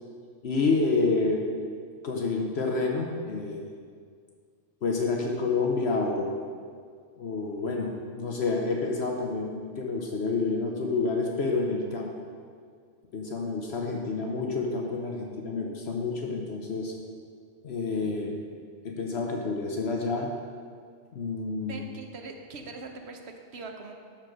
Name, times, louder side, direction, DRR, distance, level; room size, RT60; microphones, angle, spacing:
voice 1, 0.4-1.4 2.0-3.6 4.8-6.3 7.2-12.1 13.1-16.9 17.6-18.4 18.8-20.3 21.1-21.8, left 3 dB, 65° left, 1 dB, 1.1 m, -28 dB
voice 2, 21.6-23.9, right 3 dB, 65° right, 4 dB, 1.2 m, -42 dB
13.0 x 4.6 x 6.2 m, 2.1 s
omnidirectional pair, 1.2 m